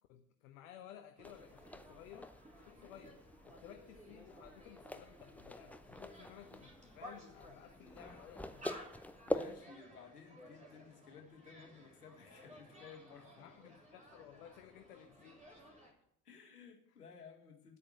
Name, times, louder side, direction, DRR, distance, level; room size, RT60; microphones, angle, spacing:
voice 1, 0.1-2.3 2.7-8.7 13.4-15.4, left 10 dB, 60° left, 7 dB, 1.0 m, -56 dB
sound 1, 1.2-9.6, left 1 dB, 5° left, 0.7 m, -45 dB
sound 2, 1.2-15.9, equal, 15° right, 3.5 m, -57 dB
voice 2, 9.2-13.5 16.2-17.8, left 6 dB, 80° left, 5 dB, 1.9 m, -56 dB
10.5 x 8.7 x 7.6 m, 0.73 s
figure-of-eight pair, 65°, 46 cm